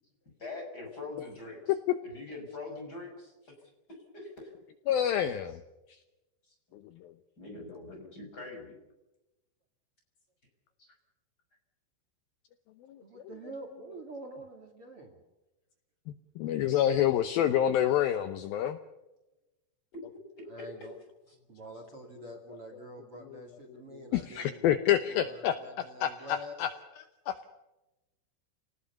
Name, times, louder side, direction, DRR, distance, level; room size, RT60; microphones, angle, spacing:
voice 1, 0.4-1.7 2.0-3.5 4.1-4.5 6.5-6.8 7.4-8.8 10.8-10.9 20.4-20.9 21.3-21.4 26.2-26.3, left 3 dB, 20° left, 2 dB, 6.4 m, -43 dB
voice 2, 4.9-5.6 7.0-7.1 12.9-13.0 16.1-18.8 24.1-26.7 27.3-27.4, left 10 dB, 80° left, 10 dB, 2.2 m, -28 dB
voice 3, 13.0-15.2 20.5-20.9 21.5-26.7, right 1 dB, 35° right, 5 dB, 2.9 m, -46 dB
29.0 x 19.0 x 7.0 m, 1.0 s
omnidirectional pair, 5.3 m